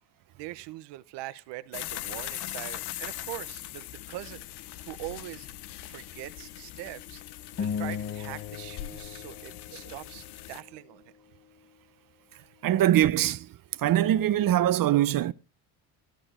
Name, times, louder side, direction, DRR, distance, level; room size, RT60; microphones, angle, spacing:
voice 1, 0.3-4.5 4.9-5.5 5.9-7.2 7.6-11.0, right 17 dB, 85° right, 1.1 m, -42 dB
sound 1, 1.7-10.6, left 14 dB, 70° left, 0.9 m, -41 dB
sound 2, 7.6-10.2, left 7 dB, 35° left, 1.2 m, -36 dB
voice 2, 12.6-13.5 13.8-15.3, right 12 dB, 55° right, 0.8 m, -22 dB
13.0 x 10.0 x 4.4 m
cardioid pair, 110°, 41 cm